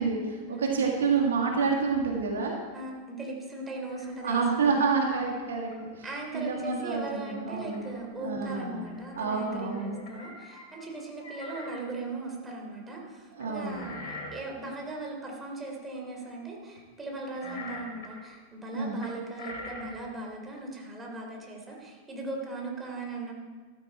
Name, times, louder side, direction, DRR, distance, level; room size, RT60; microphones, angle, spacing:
voice 1, 0.0-2.6 4.2-5.7 6.0-6.1 6.3-7.9 8.2-8.9 9.2-10.0 13.3-13.9 18.7-19.0, right 5 dB, 65° right, 1 dB, 1.9 m, -28 dB
voice 2, 0.5-1.0 2.7-4.9 6.0-23.3, right 2 dB, 15° right, -1 dB, 3.4 m, -38 dB
sound 1, 3.8-4.2 5.0-5.2 5.7-5.9 7.4-8.0 8.3-8.4 8.6-10.9 11.2-11.8 13.4-15.1 17.3-18.1 19.0-20.0, left 2 dB, 50° left, 3.6 m, -44 dB
14.0 x 13.0 x 4.3 m, 1.5 s
figure-of-eight pair, 90°, 0 cm